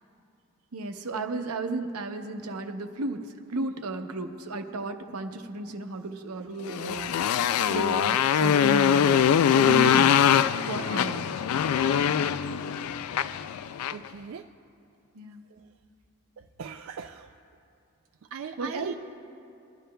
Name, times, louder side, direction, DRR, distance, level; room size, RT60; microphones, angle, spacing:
voice 1, 0.7-9.2 9.5-10.2 10.7-11.4 15.1-15.4 18.6-18.9, right 2 dB, 85° right, 6 dB, 0.8 m, -34 dB
voice 2, 6.4-7.0 13.9-14.5 15.5-15.7 16.4-17.3 18.2-18.9, right 6 dB, 65° right, 6 dB, 0.3 m, -41 dB
Motorcycle, 6.7-14.1, left 8 dB, 80° left, 0.3 m, -23 dB
23.0 x 12.0 x 2.3 m, 2.6 s
head